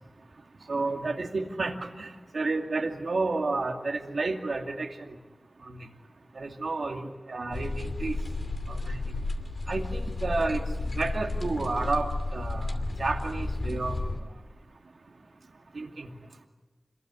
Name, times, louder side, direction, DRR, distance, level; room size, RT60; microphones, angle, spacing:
voice 1, 0.7-4.9 5.7-5.8 6.4-8.2 8.7-9.0 9.7-12.7 13.0-14.0 15.8-16.1, right 3 dB, 75° right, 4 dB, 2.4 m, -31 dB
sound 1, 7.5-14.2, left 2 dB, 60° left, 2.6 m, -32 dB
26.5 x 22.0 x 9.8 m, 1.2 s
wide cardioid pair, 55°, 0 cm